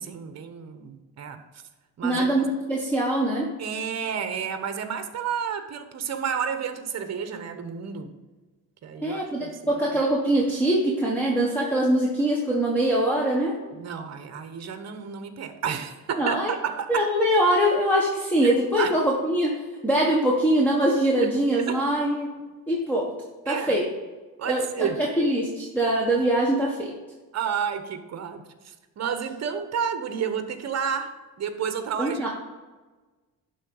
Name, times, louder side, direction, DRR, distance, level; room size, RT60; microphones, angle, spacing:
voice 1, 0.0-1.4 2.0-2.3 3.6-8.1 8.8-9.5 13.8-17.0 18.4-18.9 21.7-21.8 23.5-23.7 24.4-25.0 27.3-32.3, right 7 dB, 45° right, 9 dB, 1.0 m, -31 dB
voice 2, 2.0-3.5 9.0-13.6 16.2-16.5 16.9-22.3 22.7-23.1 23.4-23.8 24.4-24.9 25.2-26.9 32.0-32.3, right 1 dB, 5° left, -4 dB, 1.3 m, -23 dB
11.5 x 3.9 x 5.4 m, 1.3 s
cardioid pair, 135°, 36 cm